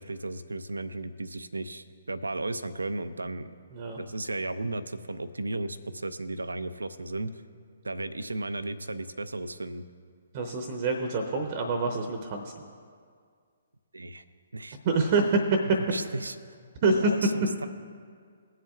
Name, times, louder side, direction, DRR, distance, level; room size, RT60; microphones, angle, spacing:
voice 1, 0.0-3.5 4.0-7.3 7.8-9.8 13.9-14.2 14.5-14.8 15.9-16.4 16.9-17.7, right 2 dB, 75° right, 13 dB, 0.5 m, -34 dB
voice 2, 10.3-12.5 14.8-15.4 16.8-17.1, right 3 dB, 35° right, 4 dB, 0.8 m, -26 dB
22.0 x 7.4 x 2.4 m, 2.1 s
figure-of-eight pair, 130°, 0 cm